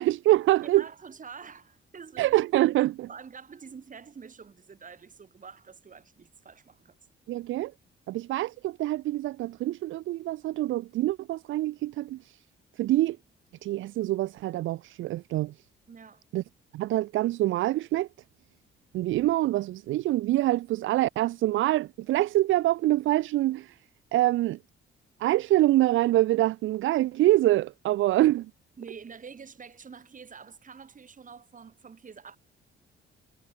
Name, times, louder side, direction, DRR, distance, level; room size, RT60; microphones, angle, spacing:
voice 1, 0.0-0.8 2.2-3.1 7.3-7.7 8.1-12.2 12.8-13.2 13.6-15.5 16.3-16.4 16.7-18.1 18.9-23.7 24.1-24.6 25.2-28.5, right 15 dB, 80° right, 0.7 m, -25 dB
voice 2, 0.6-2.4 3.1-7.0 15.9-16.2 28.8-32.4, right 6 dB, 40° right, 6.3 m, -47 dB
cardioid pair, 90°, 20 cm